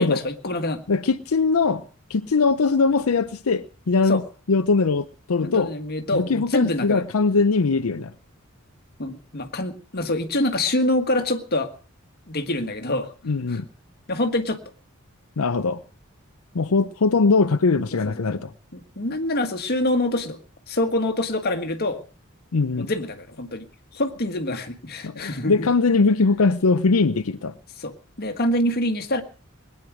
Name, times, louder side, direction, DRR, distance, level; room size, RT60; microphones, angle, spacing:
voice 1, 0.0-0.8 4.1-4.2 5.4-7.0 9.0-11.7 12.3-13.1 13.5-13.6 14.1-14.6 17.9-18.4 18.7-20.4 20.7-22.0 22.8-23.7 23.9-25.7 27.8-29.2, left 1 dB, 50° left, 1.6 m, -25 dB
voice 2, 0.9-1.8 2.1-4.2 4.5-5.7 6.1-8.1 13.3-13.7 15.4-15.8 16.5-18.5 22.5-22.9 25.0-27.5, left 4 dB, 90° left, 0.6 m, -21 dB
20.5 x 9.6 x 6.2 m
head